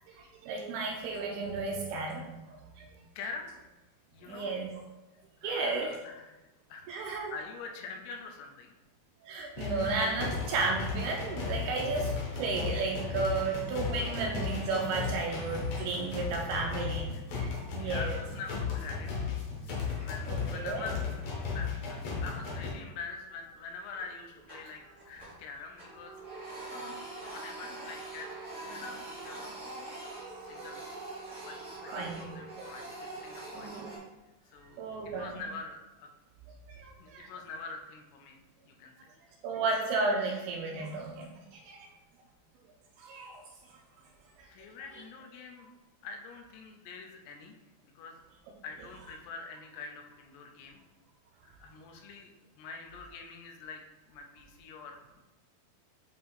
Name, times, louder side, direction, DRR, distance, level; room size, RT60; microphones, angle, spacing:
voice 1, 0.1-3.1 4.3-4.7 5.4-5.9 6.9-7.4 9.2-18.2 19.9-20.9 31.9-32.2 33.5-33.9 34.8-35.4 36.7-37.3 39.4-41.9 43.0-43.4 43.7-43.8 44.4-44.5, right 3 dB, 80° right, 0 dB, 2.3 m, -34 dB
voice 2, 3.2-3.5 4.1-4.6 5.4-6.4 6.7-8.7 16.4-17.0 17.5-19.3 19.7-26.2 26.7-29.5 30.4-30.8 31.4-33.8 34.5-36.1 37.0-39.1 44.5-45.7 46.0-47.6 47.8-48.2 48.6-50.8 51.5-53.8 54.1-55.2, left 4 dB, 80° left, 3 dB, 2.7 m, -45 dB
sound 1, 9.6-22.7, left 5 dB, 65° left, 1.7 m, -35 dB
Printer, 22.7-23.0 23.3-23.5 23.9-25.5 25.7-34.0, right 2 dB, 40° right, 0.5 m, -44 dB
7.9 x 2.8 x 4.2 m, 1.1 s
omnidirectional pair, 4.8 m